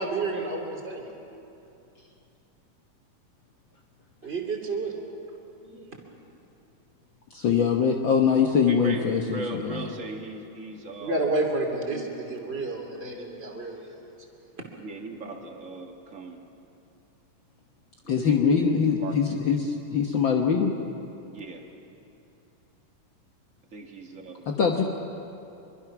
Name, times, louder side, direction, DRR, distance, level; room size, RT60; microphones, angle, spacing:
voice 1, 0.0-1.1 4.2-4.9 5.6-6.0 11.0-14.0 14.6-14.7, right 2 dB, 20° right, 0 dB, 2.7 m, -30 dB
voice 2, 7.3-9.8 18.1-20.7 24.5-24.8, left 6 dB, 80° left, 1 dB, 1.0 m, -23 dB
voice 3, 8.6-11.3 11.9-12.1 14.8-16.4 18.3-19.1 21.3-21.7 23.7-24.5, right 3 dB, 35° right, 2 dB, 1.3 m, -38 dB
26.0 x 23.5 x 6.1 m, 2.8 s
omnidirectional pair, 4.0 m